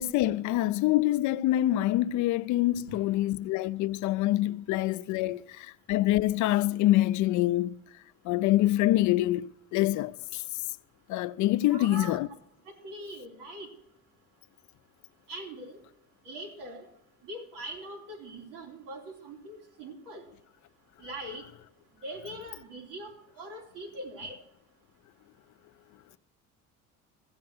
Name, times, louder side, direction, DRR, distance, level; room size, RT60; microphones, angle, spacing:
voice 1, 0.0-7.7 8.2-10.4 11.1-12.3, left 15 dB, 65° left, 0.6 m, -26 dB
voice 2, 11.6-12.2 12.8-13.7 15.3-15.8 16.3-16.9 17.2-20.2 21.0-21.4 22.0-24.4, right 1 dB, 85° right, 3.5 m, -42 dB
14.5 x 7.7 x 7.8 m
cardioid pair, 150°, 31 cm